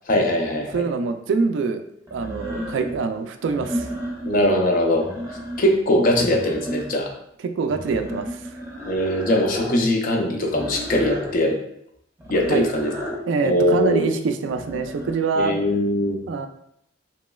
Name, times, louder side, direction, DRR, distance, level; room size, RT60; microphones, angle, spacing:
voice 1, 0.1-0.9 4.2-5.1 5.6-7.1 8.8-11.6 12.3-12.9 13.4-14.1 15.4-16.2, left 1 dB, 50° left, 2 dB, 0.5 m, -21 dB
sound 1, 0.7-0.8 2.1-3.0 3.4-4.5 4.8-5.8 6.1-7.1 7.7-9.8 10.5-11.4 12.2-13.3 14.5-15.2, equal, 15° right, 0.6 m, -33 dB
voice 2, 0.7-1.8 2.1-3.9 7.4-8.6 12.5-12.7 13.3-15.5 16.3-16.5, right 4 dB, 75° right, 8 dB, 0.3 m, -24 dB
3.0 x 2.9 x 2.2 m, 0.74 s
head